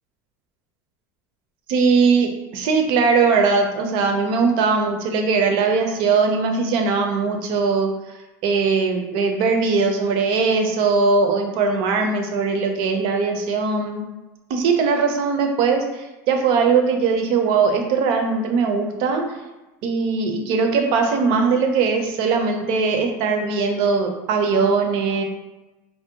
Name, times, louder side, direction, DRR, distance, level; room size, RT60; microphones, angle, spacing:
voice 1, 1.7-7.9 8.4-14.0 14.5-19.2 19.8-25.2, right 4 dB, 55° right, 4 dB, 0.5 m, -20 dB
2.5 x 2.0 x 2.7 m, 1.1 s
supercardioid pair, 135°, 10 cm